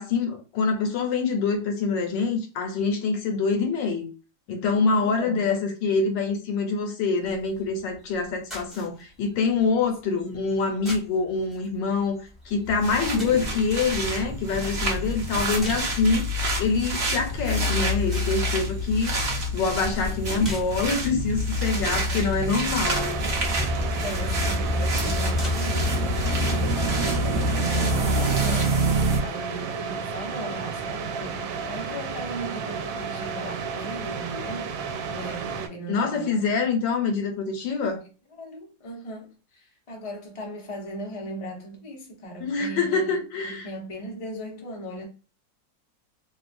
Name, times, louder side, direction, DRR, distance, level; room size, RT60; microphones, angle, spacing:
voice 1, 0.0-4.1 4.5-16.3 16.6-19.1 19.5-23.2 35.9-38.0 42.4-43.7, left 4 dB, 75° left, 1.3 m, -25 dB
voice 2, 4.9-5.5 10.1-10.5 12.9-13.6 22.0-22.6 24.0-29.0 29.2-36.7 38.3-45.1, equal, 50° left, 0.4 m, -38 dB
sound 1, 7.2-26.3, equal, ahead, 0.6 m, -43 dB
sound 2, 12.7-29.2, equal, 55° right, 0.7 m, -26 dB
sound 3, 22.8-35.7, right 5 dB, 85° right, 1.3 m, -32 dB
3.1 x 2.2 x 2.5 m
omnidirectional pair, 2.0 m